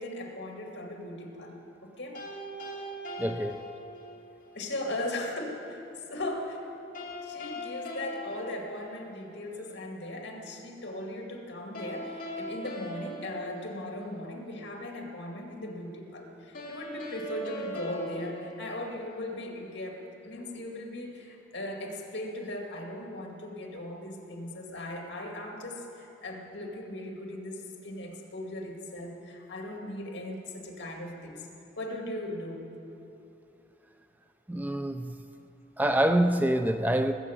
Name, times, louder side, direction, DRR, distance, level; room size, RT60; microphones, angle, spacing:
voice 1, 0.0-2.2 4.5-5.8 6.1-6.6 7.2-31.5 31.8-32.7, left 1 dB, 70° left, 2.2 m, -38 dB
sound 1, 2.1-4.3 6.9-9.4 11.7-14.3 16.5-19.4, left 1 dB, 50° left, 2.9 m, -40 dB
voice 2, 3.2-3.7 34.5-35.2 35.8-37.1, right 1 dB, 10° right, 0.4 m, -26 dB
19.5 x 8.1 x 7.3 m
head